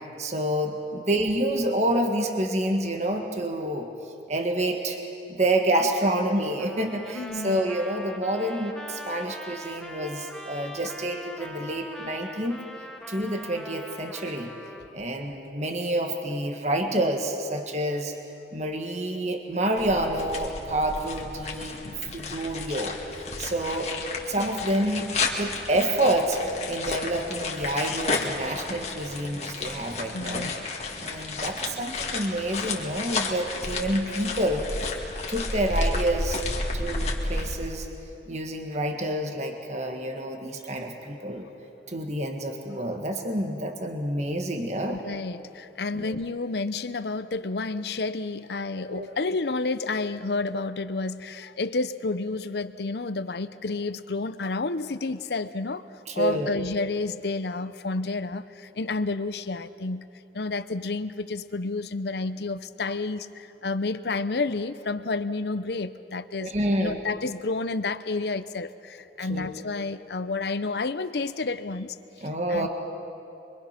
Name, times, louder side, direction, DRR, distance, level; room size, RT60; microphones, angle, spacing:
voice 1, 0.2-3.9 4.3-5.0 5.3-12.6 13.1-14.5 14.9-18.1 18.5-21.8 22.1-23.0 23.4-26.4 26.7-30.5 31.0-34.6 35.3-36.4 36.7-37.9 38.3-41.5 41.9-45.0 45.9-46.2 48.8-49.2 56.1-56.5 66.4-67.0 69.2-69.5 72.2-72.7, right 1 dB, 40° right, 3 dB, 1.7 m, -28 dB
Trumpet, 6.6-14.9, equal, 5° left, 1.1 m, -42 dB
voice 2, 7.1-7.6 14.9-15.0 21.8-22.2 30.1-30.7 44.9-55.9 56.1-60.1 60.3-66.5 66.8-72.0 72.5-72.7, left 3 dB, 70° left, 13 dB, 0.7 m, -30 dB
sound 1, 19.8-37.6, left 3 dB, 35° left, 2.0 m, -32 dB
25.0 x 23.5 x 5.9 m, 2.7 s
head